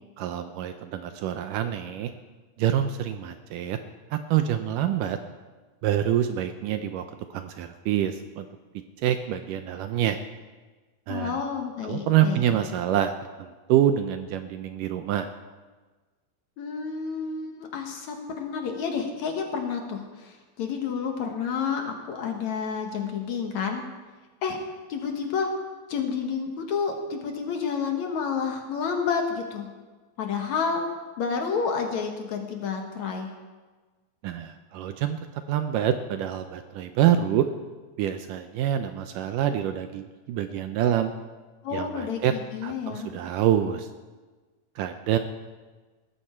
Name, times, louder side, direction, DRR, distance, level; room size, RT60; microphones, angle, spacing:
voice 1, 0.2-2.1 2.6-3.8 4.1-5.2 5.8-7.0 7.3-8.5 9.0-10.2 11.1-11.4 11.8-13.1 13.4-15.3 34.2-37.5 38.0-41.1 41.7-42.3 42.6-43.9 44.8-45.2, right 10 dB, 75° right, 8 dB, 2.1 m, -26 dB
voice 2, 11.1-12.6 16.6-23.8 24.4-24.6 24.9-25.5 25.9-29.7 30.2-30.8 31.2-33.3 41.6-43.1, left 6 dB, 60° left, 3 dB, 2.3 m, -30 dB
18.5 x 14.0 x 4.4 m, 1.3 s
omnidirectional pair, 4.2 m